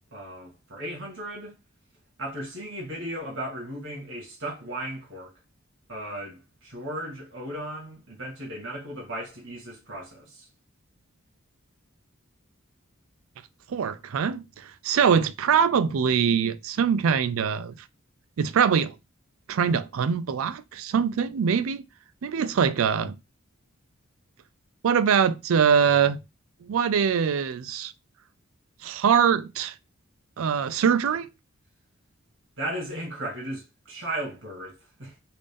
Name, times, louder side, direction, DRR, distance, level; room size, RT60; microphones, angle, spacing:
voice 1, 0.1-1.5 2.2-5.3 5.9-10.5 32.6-35.1, right 1 dB, 60° right, 1.5 m, -36 dB
voice 2, 13.7-14.5 14.8-17.7 18.4-18.9 19.5-21.8 22.2-23.2 24.8-26.2 26.7-27.9 28.8-29.7 30.4-31.3, right 7 dB, 75° right, 0.4 m, -23 dB
3.5 x 2.5 x 3.4 m
head